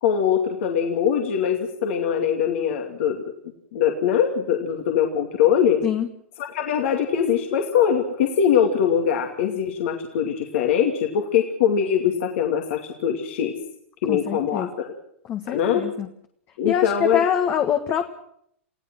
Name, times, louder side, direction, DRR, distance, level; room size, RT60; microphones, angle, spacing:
voice 1, 0.0-3.2 3.7-5.8 6.4-13.5 14.0-14.9 15.5-15.8 16.6-17.2, left 8 dB, 60° left, 2 dB, 2.6 m, -22 dB
voice 2, 14.1-14.7 15.3-16.1 16.6-18.1, left 8 dB, 30° left, 6 dB, 1.6 m, -25 dB
29.5 x 16.5 x 6.2 m, 0.68 s
hypercardioid pair, 105°, 7 cm